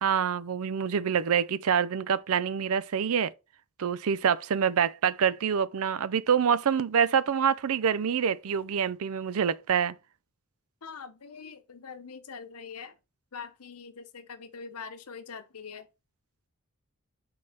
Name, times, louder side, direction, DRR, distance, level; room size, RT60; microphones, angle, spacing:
voice 1, 0.0-3.3 3.8-9.9, right 7 dB, 70° right, 0.5 m, -26 dB
voice 2, 10.8-13.0 13.3-15.9, left 5 dB, 80° left, 0.9 m, -43 dB
5.3 x 4.0 x 5.7 m
head